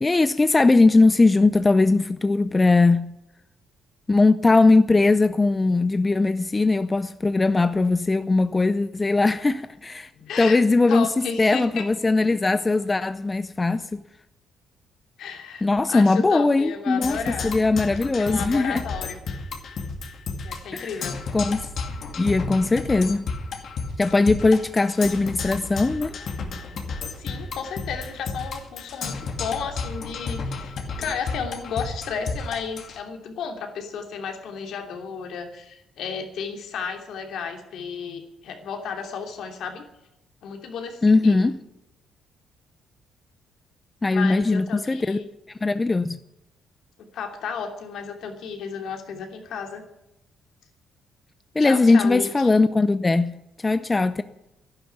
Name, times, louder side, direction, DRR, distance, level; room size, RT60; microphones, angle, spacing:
voice 1, 0.0-3.1 4.1-10.1 10.4-14.0 15.6-17.2 17.4-18.8 20.7-20.9 21.3-21.6 22.2-23.3 24.0-26.1 41.0-41.5 44.0-45.2 45.6-46.2 51.5-53.3 53.6-54.2, left 3 dB, 20° left, 0.6 m, -20 dB
voice 2, 10.2-10.6 10.9-11.8 15.2-17.5 18.2-19.2 20.4-21.2 27.1-39.8 40.4-41.4 44.1-45.2 47.1-49.8 51.6-52.5, left 6 dB, 70° left, 2.9 m, -33 dB
Percussion, 17.0-33.0, left 4 dB, 55° left, 2.3 m, -32 dB
12.0 x 11.5 x 9.4 m
cardioid pair, 110°, 0 cm